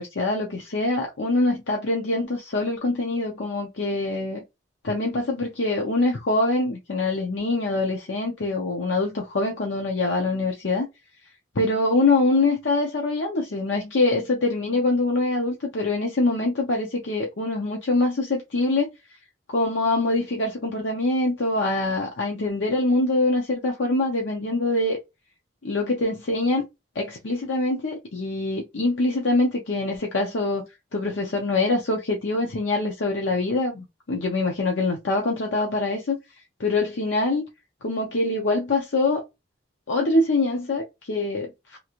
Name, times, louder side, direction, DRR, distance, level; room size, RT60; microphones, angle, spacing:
voice 1, 0.0-4.4 4.8-10.9 11.5-18.9 19.5-25.0 25.6-26.6 26.9-30.6 30.9-36.2 36.6-37.4 37.8-39.2 39.9-41.8, left 2 dB, 85° left, 0.7 m, -24 dB
3.0 x 2.5 x 2.9 m
head